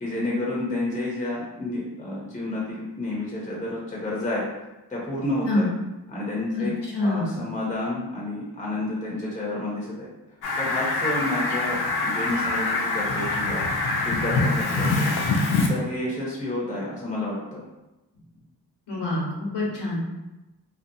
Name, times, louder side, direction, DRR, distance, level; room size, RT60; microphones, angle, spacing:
voice 1, 0.0-4.4 4.9-5.7 6.1-6.7 7.0-10.1 10.6-13.6 14.0-15.1 15.7-17.6, left 1 dB, 20° left, -5 dB, 0.5 m, -30 dB
voice 2, 6.9-7.4 18.9-20.1, left 2 dB, 85° left, -4 dB, 0.9 m, -26 dB
Fowl, 10.4-15.7, left 3 dB, 70° left, 0.5 m, -24 dB
2.7 x 2.1 x 2.6 m, 1.0 s
wide cardioid pair, 125°, 40 cm